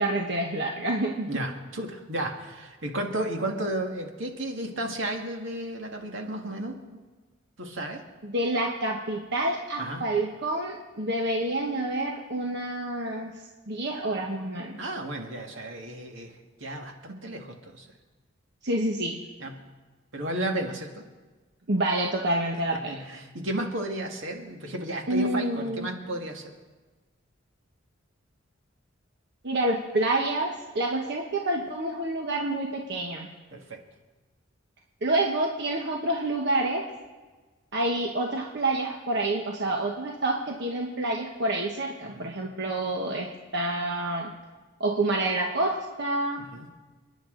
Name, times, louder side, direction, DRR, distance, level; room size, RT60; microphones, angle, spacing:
voice 1, 0.0-1.3 8.2-13.3 13.7-14.8 18.6-19.2 21.7-23.0 25.1-25.9 29.4-33.3 35.0-36.9 37.7-44.3 44.8-46.4, right 2 dB, 60° right, 0 dB, 1.2 m, -28 dB
voice 2, 1.3-7.0 7.6-8.0 9.8-10.0 14.8-16.3 16.6-17.9 19.4-19.6 20.1-21.1 22.9-26.6 33.5-33.8 42.0-42.3 46.4-46.7, right 1 dB, 75° right, 3 dB, 1.9 m, -33 dB
29.5 x 10.5 x 3.9 m, 1.3 s
head